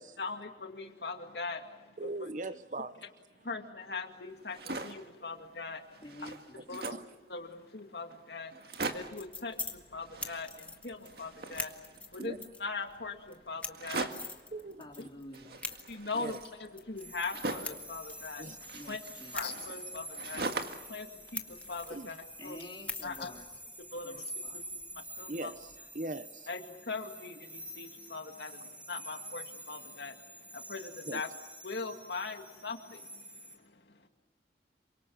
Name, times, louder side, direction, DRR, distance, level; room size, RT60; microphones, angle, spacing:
voice 1, 0.2-2.1 3.4-6.0 6.7-7.0 7.3-14.1 15.9-18.5 18.9-19.0 19.3-22.6 23.0-23.3 23.9-24.6 24.9-25.5 26.5-31.3 31.6-34.1, left 4 dB, 70° left, 2.3 m, -41 dB
voice 2, 2.0-3.0 6.6-7.1 12.2-12.4 14.5-14.8 16.1-16.4 18.4-18.6 21.9-22.2 25.3-26.5 31.1-31.2, right 2 dB, 45° right, 0.8 m, -40 dB
sound 1, 4.4-5.1 5.6-5.7 5.9-7.1 7.8-7.9 8.1-8.2 8.5-9.3 10.0-10.8 11.0-12.3 13.7-14.4 15.3-17.9 18.6-20.9 21.3-22.2, right 3 dB, 60° right, 1.9 m, -41 dB
voice 3, 6.0-6.8 14.8-15.6 18.7-19.4 22.4-23.5 24.0-24.8, left 1 dB, 25° left, 3.7 m, -49 dB
sound 2, 8.9-25.8, left 3 dB, 10° left, 1.3 m, -46 dB
sound 3, 17.0-33.5, right 1 dB, 10° right, 3.6 m, -47 dB
27.5 x 25.0 x 7.2 m
head